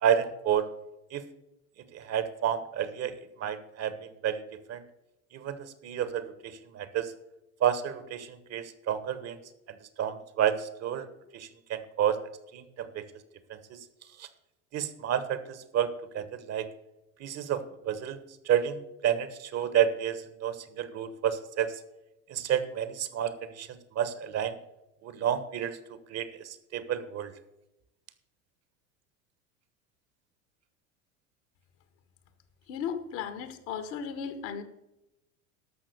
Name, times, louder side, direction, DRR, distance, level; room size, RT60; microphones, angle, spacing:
voice 1, 0.0-0.7 1.1-1.2 1.9-3.1 3.4-3.9 4.2-4.4 4.7-4.8 5.3-6.3 6.7-7.1 7.6-9.4 10.0-11.1 11.3-12.2 12.5-13.0 13.7-13.8 14.2-14.3 14.7-16.7 17.2-18.2 18.5-21.7 22.3-23.7 24.0-24.5 25.0-25.8 26.1-27.3, right 9 dB, 40° right, 13 dB, 1.2 m, -30 dB
voice 2, 32.7-34.6, left 7 dB, 60° left, 9 dB, 1.6 m, -35 dB
13.0 x 6.0 x 6.6 m, 0.90 s
hypercardioid pair, 80°, 40 cm